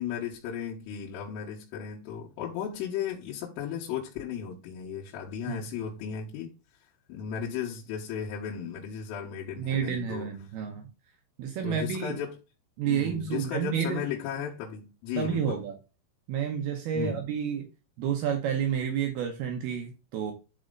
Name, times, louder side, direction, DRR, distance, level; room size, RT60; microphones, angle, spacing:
voice 1, 0.0-6.5 7.1-10.3 11.6-12.4 12.9-15.6 16.9-17.2, left 8 dB, 85° left, 3.9 m, -35 dB
voice 2, 9.6-10.8 11.4-12.2 12.8-14.0 15.2-15.8 16.3-17.7 18.0-20.3, right 8 dB, 85° right, 2.2 m, -30 dB
12.0 x 4.3 x 3.9 m
omnidirectional pair, 5.8 m